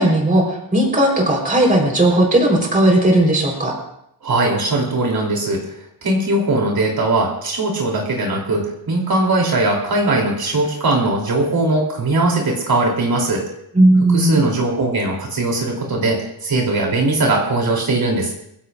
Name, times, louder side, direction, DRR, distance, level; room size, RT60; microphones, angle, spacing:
voice 1, 0.0-3.7 13.7-14.4, right 1 dB, 20° right, -1 dB, 4.1 m, -16 dB
voice 2, 4.2-5.7 6.0-13.4 14.1-18.3, right 2 dB, 55° right, -1 dB, 3.4 m, -20 dB
24.0 x 15.5 x 2.5 m, 0.75 s
wide cardioid pair, 170°, 44 cm